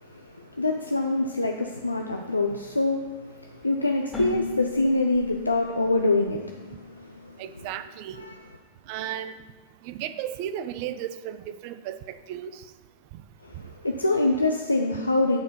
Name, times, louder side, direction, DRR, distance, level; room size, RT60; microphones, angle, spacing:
voice 1, 0.0-7.3 8.2-8.4 13.4-15.4, left 2 dB, 80° left, 3 dB, 0.5 m, -25 dB
Keyboard (musical), 4.1-7.8, left 3 dB, 10° left, 2.1 m, -36 dB
voice 2, 7.4-8.3 8.9-9.4 9.8-12.6, right 10 dB, 45° right, 12 dB, 0.5 m, -34 dB
8.5 x 4.4 x 5.8 m, 1.3 s
figure-of-eight pair, 90°, 0 cm